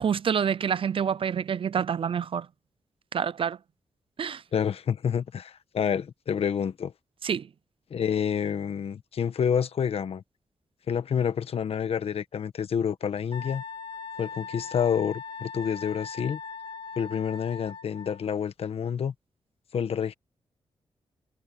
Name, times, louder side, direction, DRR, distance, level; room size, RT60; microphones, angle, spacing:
voice 1, 0.0-2.5 3.1-3.6 4.2-4.4 7.2-7.5, right 7 dB, 60° right, 0.6 m, -27 dB
voice 2, 4.5-6.9 7.9-10.2 10.9-13.6 14.2-16.4 17.0-19.1 19.7-20.1, left 7 dB, 75° left, 1.3 m, -28 dB
Wind instrument woodwind instrument, 13.3-18.3, left 5 dB, 55° left, 2.1 m, -40 dB
cardioid pair, 70°, 10 cm